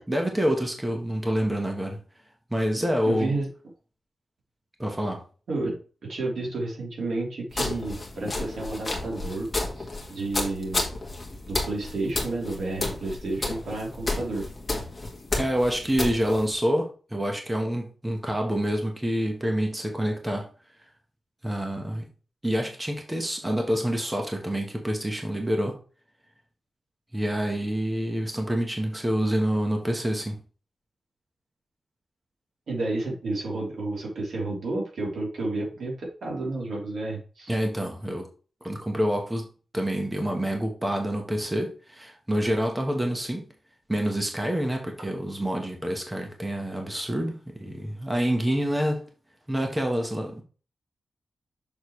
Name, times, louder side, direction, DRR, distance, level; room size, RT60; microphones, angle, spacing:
voice 1, 0.1-2.0 2.5-3.3 4.8-5.2 15.4-20.5 21.4-22.1 22.4-25.8 27.1-30.4 37.5-38.3 38.6-39.5 39.7-43.4 43.9-49.0 49.5-50.4, equal, 10° right, 2 dB, 1.2 m, -27 dB
voice 2, 3.1-3.5 5.5-9.5 9.7-10.8 11.5-14.5 32.7-37.5, right 2 dB, 85° right, -2 dB, 3.4 m, -31 dB
sound 1, 7.5-16.5, left 2 dB, 20° left, 1.7 m, -32 dB
6.6 x 6.5 x 3.2 m, 0.38 s
wide cardioid pair, 175°, 0 cm